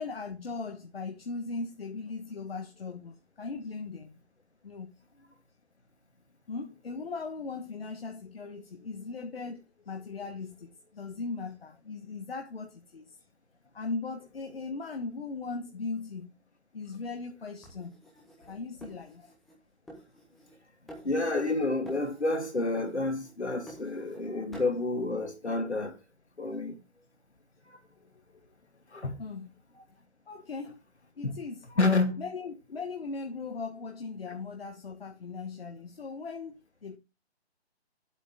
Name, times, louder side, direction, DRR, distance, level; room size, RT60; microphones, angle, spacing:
voice 1, 0.0-4.1 4.6-4.9 6.5-13.2 13.7-16.3 16.7-18.0 18.5-19.3 28.0-28.1 29.2-29.5 30.3-30.8 31.2-31.6 32.2-37.0, left 4 dB, 60° left, 1.4 m, -38 dB
sound 1, 17.6-19.6 19.9-20.6 20.9-21.6 21.8-22.5 22.8-24.2 24.5-24.8, equal, ahead, 0.6 m, -49 dB
voice 2, 21.0-26.0 26.4-26.8 27.7-27.8 28.9-29.2 31.2-31.3 31.8-32.2, left 2 dB, 85° left, 3.1 m, -29 dB
9.5 x 8.0 x 3.6 m
figure-of-eight pair, 150°, 33 cm